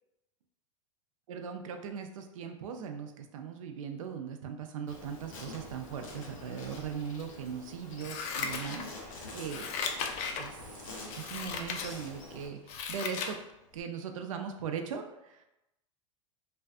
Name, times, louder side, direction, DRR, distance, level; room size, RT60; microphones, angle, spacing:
voice 1, 1.3-9.7 10.4-10.6 11.1-13.4 13.7-15.4, right 7 dB, 80° right, 5 dB, 0.4 m, -39 dB
Insect, 4.9-12.5, left 2 dB, 85° left, 0.7 m, -46 dB
Scissors, 8.0-9.1 9.5-10.5 11.1-11.9 12.3-13.4 13.8-13.9, left 5 dB, 45° left, 0.4 m, -36 dB
2.5 x 2.3 x 2.4 m, 0.90 s
hypercardioid pair, 105°, 17 cm